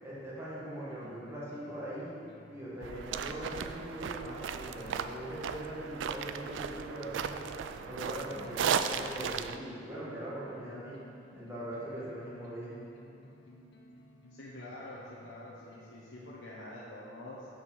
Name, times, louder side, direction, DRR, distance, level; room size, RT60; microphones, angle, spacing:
voice 1, 0.0-2.1 2.5-7.5 7.8-11.0 11.3-12.7, right 1 dB, 15° right, -8 dB, 1.5 m, -41 dB
sound 1, 0.9-16.8, left 1 dB, 60° left, 0.7 m, -57 dB
sound 2, 2.8-9.6, right 7 dB, 70° right, 0.3 m, -36 dB
voice 2, 14.3-17.5, left 1 dB, 85° left, -6 dB, 1.0 m, -46 dB
7.0 x 5.0 x 5.6 m, 2.6 s
head